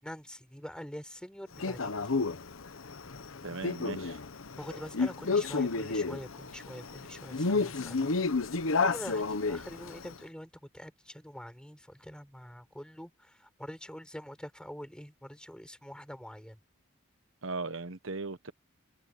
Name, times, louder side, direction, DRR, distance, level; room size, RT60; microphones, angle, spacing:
voice 1, 0.0-2.2 4.6-8.1 8.8-16.6, equal, 5° left, 6.1 m, -45 dB
Male speech man speaking, 1.6-10.1, left 4 dB, 75° left, 1.0 m, -31 dB
voice 2, 3.4-4.2 17.4-18.5, right 3 dB, 70° right, 1.2 m, -38 dB
head